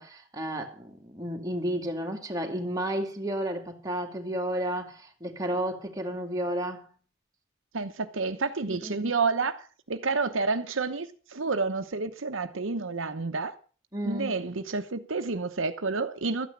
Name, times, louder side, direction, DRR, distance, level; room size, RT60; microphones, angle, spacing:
voice 1, 0.0-6.9 8.7-9.1 13.9-14.3, right 1 dB, 20° right, 2.3 m, -32 dB
voice 2, 7.7-9.6 9.9-11.1 11.3-13.5 14.0-16.5, right 4 dB, 75° right, 1.0 m, -29 dB
13.5 x 9.4 x 7.3 m
head